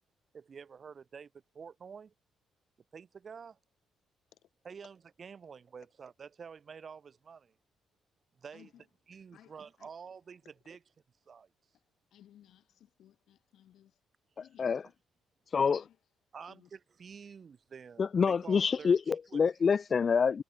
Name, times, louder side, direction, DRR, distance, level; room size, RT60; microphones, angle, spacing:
voice 1, 0.3-2.1 2.9-3.6 4.7-7.6 8.4-8.7 9.1-10.8 11.3-11.5 16.3-19.4, right 6 dB, 45° right, 2.5 m, -49 dB
voice 2, 8.5-8.9 9.3-9.9 10.3-10.4 11.7-14.0 14.4-15.0 15.6-16.1 16.5-16.7, left 11 dB, 75° left, 5.4 m, -61 dB
voice 3, 18.0-20.4, left 6 dB, 45° left, 0.3 m, -26 dB
cardioid pair, 90°, 0 cm